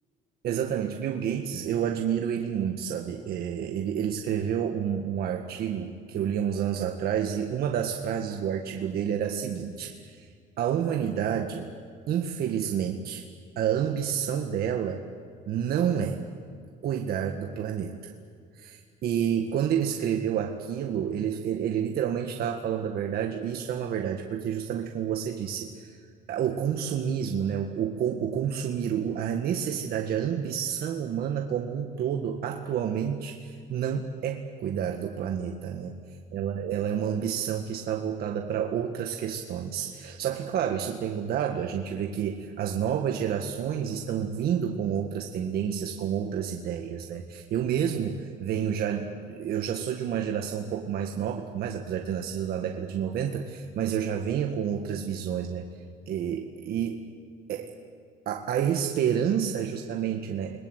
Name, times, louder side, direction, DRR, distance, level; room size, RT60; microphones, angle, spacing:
voice 1, 0.4-10.3 10.6-11.7 12.1-13.3 13.6-15.1 15.5-16.2 16.8-18.1 18.6-26.0 26.3-35.9 36.3-55.7 56.1-57.0 57.5-57.7 58.3-60.6, right 8 dB, 65° right, 3 dB, 1.8 m, -29 dB
29.5 x 21.0 x 8.2 m, 2.2 s
cardioid pair, 110°, 17 cm